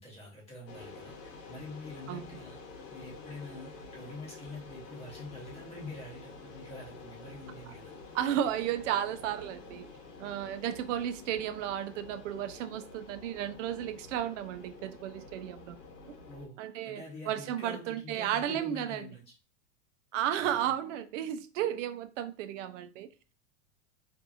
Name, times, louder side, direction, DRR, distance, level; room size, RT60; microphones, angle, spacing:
voice 1, 0.0-2.6 2.9-7.9 16.3-19.2 20.4-20.7, left 2 dB, 15° left, -5 dB, 1.0 m, -46 dB
sound 1, 0.7-16.5, left 4 dB, 85° left, 0.9 m, -49 dB
voice 2, 8.1-9.9 10.2-15.8 16.1-16.2 16.6-19.0 20.1-23.1, right 10 dB, 85° right, 10 dB, 0.5 m, -33 dB
2.7 x 2.5 x 2.4 m, 0.36 s
supercardioid pair, 170°, 37 cm